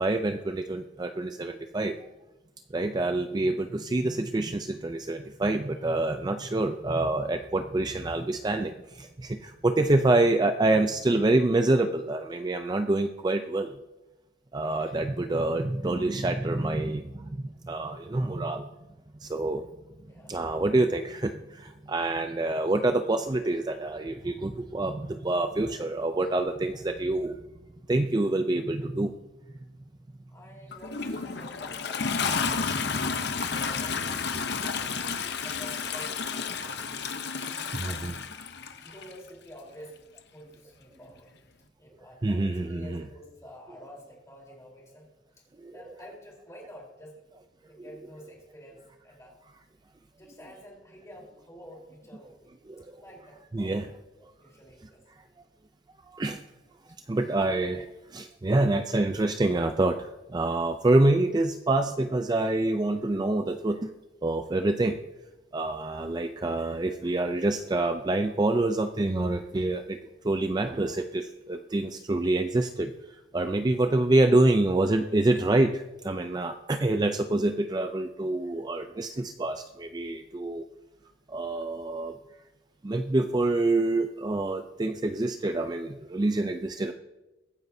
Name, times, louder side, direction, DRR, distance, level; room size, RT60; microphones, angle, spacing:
voice 1, 0.0-1.9 2.7-13.7 14.5-18.7 19.2-19.6 20.3-27.4 27.9-29.1 37.7-38.1 42.2-43.1 45.6-46.1 47.8-47.9 52.7-52.9 53.5-53.9 56.1-56.4 57.1-57.9 58.1-63.9 64.2-65.0 65.5-70.0 70.2-72.9 73.3-80.6 81.3-82.1 82.8-86.9, right 2 dB, 20° right, 7 dB, 0.4 m, -26 dB
voice 2, 20.1-20.4 30.3-37.0 37.7-38.3 38.8-40.0 40.3-41.3 41.8-45.1 45.4-45.5 45.7-49.4 50.1-52.5 53.0-53.7 54.2-55.0, equal, 15° left, -3 dB, 3.8 m, -49 dB
Toilet flush, 30.7-39.1 40.2-40.3, left 5 dB, 60° left, 0.8 m, -31 dB
23.0 x 9.3 x 2.7 m, 1.0 s
head